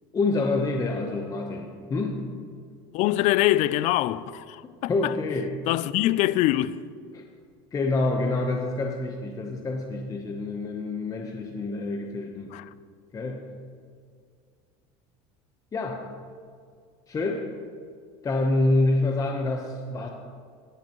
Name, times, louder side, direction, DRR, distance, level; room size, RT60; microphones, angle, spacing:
voice 1, 0.1-2.2 4.9-5.5 7.1-7.2 7.7-12.5 13.1-13.5 15.7-16.1 17.1-17.5 18.2-20.1, left 2 dB, 25° left, 1.1 m, -27 dB
voice 2, 2.9-5.1 5.7-6.8 12.5-12.6, left 15 dB, 60° left, 0.5 m, -24 dB
17.5 x 11.5 x 3.1 m
supercardioid pair, 115°, 14 cm